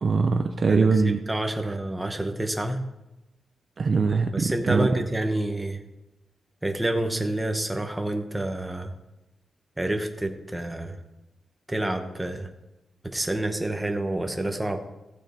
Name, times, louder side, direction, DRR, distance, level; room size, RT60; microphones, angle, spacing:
voice 1, 0.0-1.2 3.8-4.9, right 4 dB, 40° right, 6 dB, 0.5 m, -22 dB
voice 2, 0.7-2.8 4.3-5.8 6.6-8.9 9.8-11.0 11.7-12.5 13.0-14.8, right 1 dB, 10° right, 4 dB, 0.9 m, -28 dB
15.0 x 6.3 x 4.3 m, 0.95 s
wide cardioid pair, 170°, 0 cm